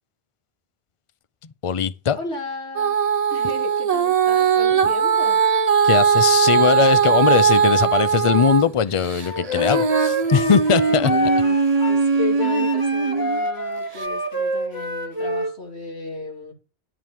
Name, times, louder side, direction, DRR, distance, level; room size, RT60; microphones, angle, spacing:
voice 1, 1.6-2.2 5.8-11.1, left 7 dB, 40° left, 0.5 m, -20 dB
voice 2, 2.1-3.0 3.3-5.4 10.9-16.5, left 5 dB, 80° left, 2.9 m, -34 dB
Female singing, 2.8-8.7 9.1-13.4 14.0-14.1, right 6 dB, 40° right, 0.7 m, -19 dB
Wind instrument woodwind instrument, 9.2-12.0 12.4-15.5, equal, 20° left, 2.4 m, -27 dB
11.0 x 4.7 x 7.3 m
omnidirectional pair, 1.1 m